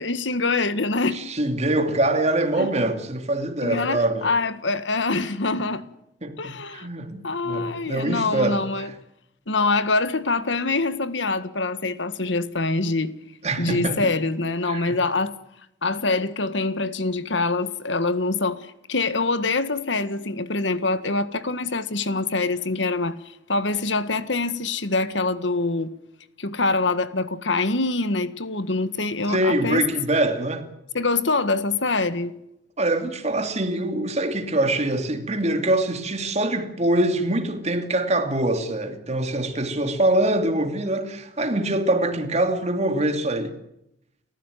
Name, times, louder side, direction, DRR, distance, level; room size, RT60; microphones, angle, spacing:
voice 1, 0.0-1.2 2.6-2.7 3.6-5.8 6.4-6.9 7.2-8.9 9.5-13.1 13.6-15.3 15.8-25.9 26.4-29.9 30.9-32.3, left 3 dB, 75° left, 1.7 m, -25 dB
voice 2, 1.1-4.3 6.2-8.9 13.4-14.1 14.7-15.0 29.3-30.7 32.8-43.5, right 1 dB, 35° right, 2.7 m, -24 dB
30.0 x 15.0 x 9.2 m
head